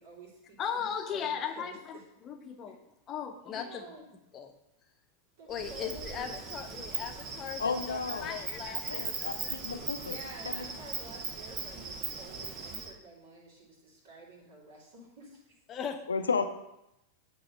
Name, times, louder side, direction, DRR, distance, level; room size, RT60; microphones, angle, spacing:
voice 1, 0.0-2.0 2.6-2.7 3.5-4.1 5.4-6.4 10.0-15.4, right 2 dB, 50° right, -4 dB, 2.4 m, -50 dB
voice 2, 0.6-2.0 2.2-2.8 3.1-3.8 4.3-4.5 5.5-7.6 7.9-9.6 15.7-16.0, left 8 dB, 30° left, 6 dB, 0.8 m, -37 dB
Insect, 5.5-12.9, right 5 dB, 35° right, 1.0 m, -39 dB
voice 3, 7.6-8.5 8.8-10.2 10.5-10.6 16.1-16.5, left 5 dB, 75° left, 8 dB, 0.6 m, -33 dB
8.7 x 3.1 x 6.4 m, 0.86 s
figure-of-eight pair, 90°, 0 cm